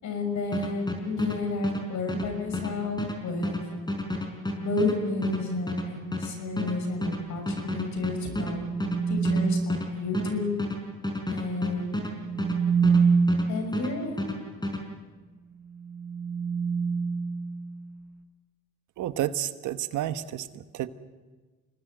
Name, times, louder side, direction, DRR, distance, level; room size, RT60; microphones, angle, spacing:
voice 1, 0.0-3.7 4.6-8.7 9.1-10.6 11.3-12.2 13.5-14.3, left 3 dB, 70° left, 7 dB, 6.3 m, -31 dB
sound 1, 0.5-13.5 13.7-14.8, left 1 dB, 15° left, 5.1 m, -32 dB
sound 2, 4.4-4.8 8.0-9.8 11.9-13.6 15.6-18.0, right 5 dB, 65° right, 2.2 m, -27 dB
voice 2, 19.0-20.5 20.7-20.9, right 12 dB, 80° right, 11 dB, 1.2 m, -30 dB
26.5 x 20.0 x 7.8 m, 1.3 s
cardioid pair, 90°, 30 cm